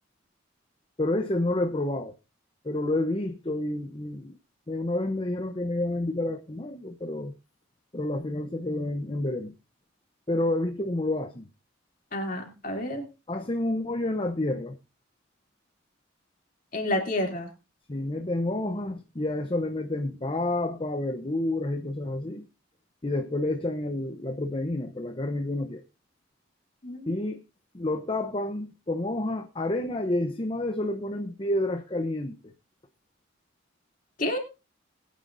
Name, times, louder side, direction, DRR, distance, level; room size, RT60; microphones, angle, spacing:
voice 1, 1.0-2.1 2.6-4.4 4.7-7.3 7.9-9.5 10.3-11.5 13.3-14.8 17.9-22.5 23.0-25.8 27.1-27.4 27.7-32.4, left 1 dB, 30° left, 0.8 m, -29 dB
voice 2, 12.1-13.0 16.7-17.5 26.8-27.1 34.2-34.4, left 1 dB, 45° left, 3.0 m, -29 dB
21.0 x 9.4 x 2.6 m
head